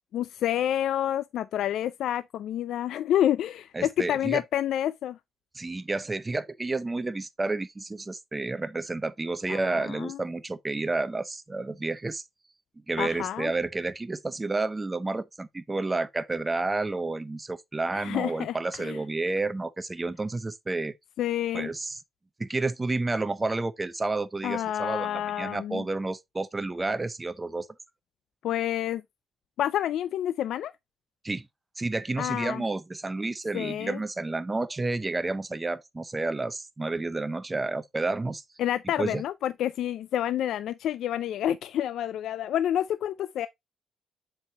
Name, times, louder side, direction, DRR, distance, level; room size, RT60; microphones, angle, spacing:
voice 1, 0.1-5.2 9.5-10.2 13.0-13.5 17.9-19.0 21.2-21.7 24.4-25.8 28.4-29.0 29.6-30.7 32.2-32.6 33.5-34.0 38.6-43.5, left 11 dB, 75° left, 0.3 m, -28 dB
voice 2, 3.7-4.4 5.5-12.2 12.9-20.9 21.5-22.0 22.4-27.7 31.2-31.5 31.8-38.4 39.0-39.2, right 3 dB, 20° right, 0.6 m, -30 dB
7.4 x 4.7 x 2.8 m
cardioid pair, 90°, 0 cm